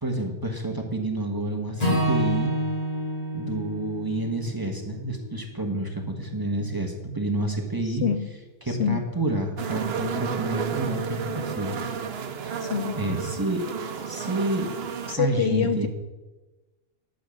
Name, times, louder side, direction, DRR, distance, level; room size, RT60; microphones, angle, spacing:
voice 1, 0.0-2.5 3.3-8.0 8.6-11.8 12.4-12.6 13.0-13.6 14.0-14.7 15.2-15.9, right 2 dB, 15° right, 1 dB, 1.3 m, -29 dB
Acoustic guitar / Strum, 1.8-6.1, equal, 30° left, 3.0 m, -29 dB
voice 2, 7.8-8.3 8.7-9.0 12.6-13.0 15.1-15.9, left 8 dB, 65° left, 9 dB, 0.8 m, -26 dB
sound 1, 9.6-15.1, right 6 dB, 55° right, 1.0 m, -32 dB
11.0 x 7.2 x 6.4 m, 1.2 s
omnidirectional pair, 1.3 m